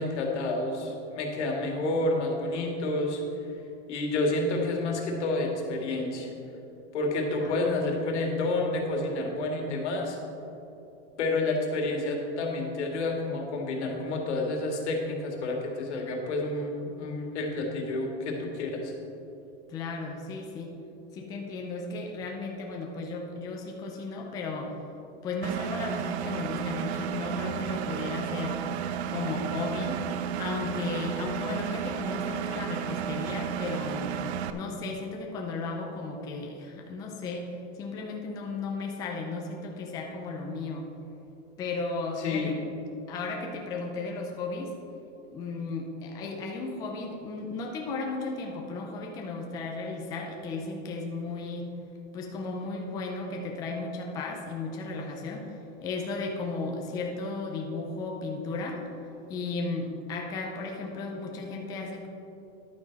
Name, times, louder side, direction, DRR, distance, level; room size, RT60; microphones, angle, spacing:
voice 1, 0.0-3.2 3.9-6.3 6.9-10.2 11.2-18.9 42.2-42.6, left 2 dB, 80° left, 1 dB, 2.1 m, -29 dB
voice 2, 19.7-20.7 21.1-24.8 25.2-28.6 29.1-30.0 30.4-34.2 34.5-40.9 41.6-42.8 43.1-44.7 45.3-51.7 52.1-58.8 59.3-62.1, left 3 dB, 10° left, 0 dB, 0.4 m, -35 dB
Engine, 25.4-34.5, right 8 dB, 70° right, 0.6 m, -32 dB
10.5 x 9.0 x 4.0 m, 2.9 s
supercardioid pair, 165°, 34 cm